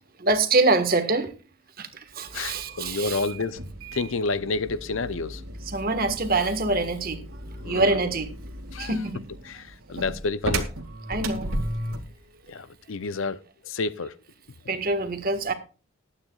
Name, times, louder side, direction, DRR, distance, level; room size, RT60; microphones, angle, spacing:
voice 1, 0.2-1.3 1.8-1.9 2.1-3.2 5.7-7.2 7.6-8.3 8.8-9.2 11.1-11.5 14.7-15.5, right 3 dB, 45° right, 1.5 m, -24 dB
voice 2, 2.3-3.6 3.9-5.4 7.6-8.0 8.7-9.0 9.4-10.7 12.5-13.4 13.6-14.1, left 3 dB, 65° left, 0.6 m, -29 dB
sound 1, 2.3-12.2, right 1 dB, 90° right, 1.9 m, -35 dB
20.0 x 9.0 x 2.4 m
head